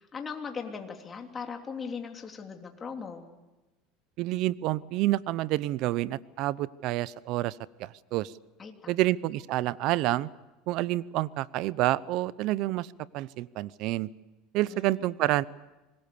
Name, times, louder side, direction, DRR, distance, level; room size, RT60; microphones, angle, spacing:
voice 1, 0.0-3.3 8.6-9.1 14.7-15.1, left 5 dB, 25° left, 3 dB, 3.2 m, -39 dB
voice 2, 4.2-8.3 8.9-10.3 10.7-14.1 14.5-15.4, right 16 dB, 60° right, 20 dB, 0.7 m, -28 dB
25.5 x 21.0 x 7.0 m, 1.1 s
supercardioid pair, 120°, 0 cm